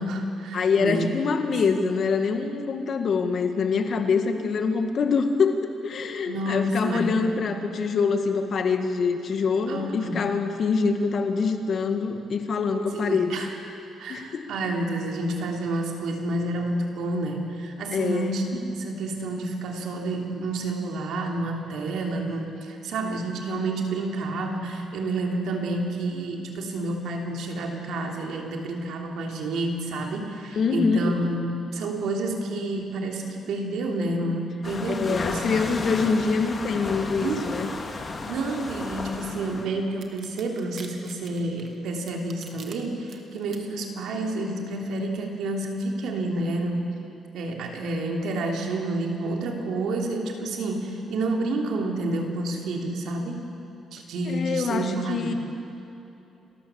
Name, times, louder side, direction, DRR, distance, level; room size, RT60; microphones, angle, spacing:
voice 1, 0.0-1.0 6.3-7.4 9.7-10.2 12.9-13.5 14.0-35.7 37.2-37.4 38.3-46.9 47.3-53.4 53.9-55.3, right 2 dB, 75° right, 1 dB, 3.1 m, -29 dB
voice 2, 0.5-13.5 14.1-14.5 17.9-18.3 30.6-31.2 35.0-37.7 54.3-55.3, left 5 dB, 55° left, 6 dB, 1.9 m, -25 dB
sound 1, 34.6-39.7, left 3 dB, 35° left, 2.3 m, -34 dB
sound 2, 40.0-42.7 43.1-43.6, right 6 dB, 60° right, 2.0 m, -45 dB
29.5 x 13.5 x 7.2 m, 2.9 s
cardioid pair, 90°, 0 cm